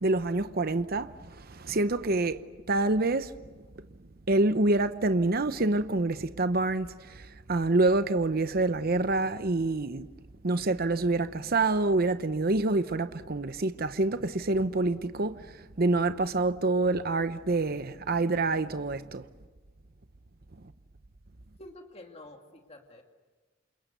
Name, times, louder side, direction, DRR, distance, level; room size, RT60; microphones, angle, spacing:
voice 1, 0.0-2.4 2.7-3.3 4.3-10.1 10.4-19.3, right 2 dB, 50° right, 0.9 m, -27 dB
voice 2, 21.6-23.0, left 1 dB, 35° left, 2.4 m, -48 dB
29.0 x 27.5 x 6.8 m
head